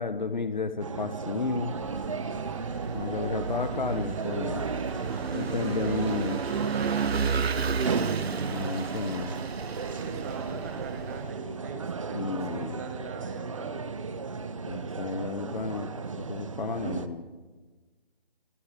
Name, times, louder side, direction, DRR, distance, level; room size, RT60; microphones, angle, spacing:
voice 1, 0.0-1.7 2.9-4.6 5.3-6.4 8.5-9.3 12.1-12.8 14.7-15.9 16.3-17.2, left 4 dB, 50° left, 11 dB, 1.3 m, -32 dB
sound 1, 0.8-17.1, right 4 dB, 30° right, 1.0 m, -35 dB
Vehicle / Engine, 1.5-11.3, right 6 dB, 85° right, 0.7 m, -33 dB
sound 2, 4.9-9.5, left 1 dB, 5° left, 4.1 m, -57 dB
voice 2, 5.4-5.9 6.7-8.2 9.9-13.8, right 5 dB, 15° right, 6 dB, 1.7 m, -42 dB
24.5 x 17.5 x 6.7 m, 1.3 s
figure-of-eight pair, 165°, 31 cm